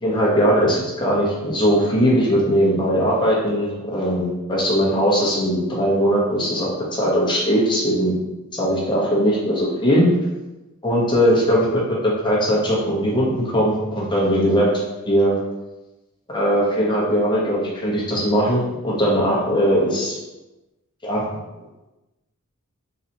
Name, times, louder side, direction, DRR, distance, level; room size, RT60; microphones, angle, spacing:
voice 1, 0.0-8.1 8.5-10.1 10.8-14.7 15.1-15.3 16.3-20.2 21.0-21.2, equal, 20° left, -5 dB, 1.0 m, -20 dB
4.1 x 3.9 x 2.8 m, 1.1 s
head